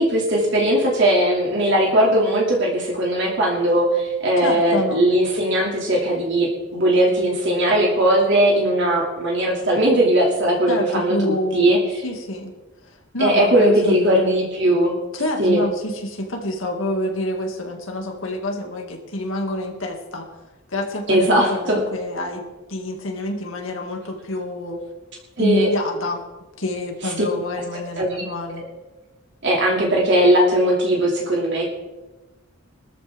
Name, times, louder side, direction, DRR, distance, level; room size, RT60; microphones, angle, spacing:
voice 1, 0.0-11.8 13.2-14.9 15.4-15.6 21.1-21.8 25.4-25.7 28.0-28.1 29.4-31.7, right 1 dB, 60° right, -2 dB, 2.6 m, -19 dB
voice 2, 4.4-5.0 10.7-12.5 13.1-14.3 15.1-20.3 20.7-24.8 25.4-26.2 26.6-28.6, left 1 dB, 70° left, 2 dB, 2.3 m, -27 dB
20.5 x 13.5 x 3.6 m, 1.1 s
head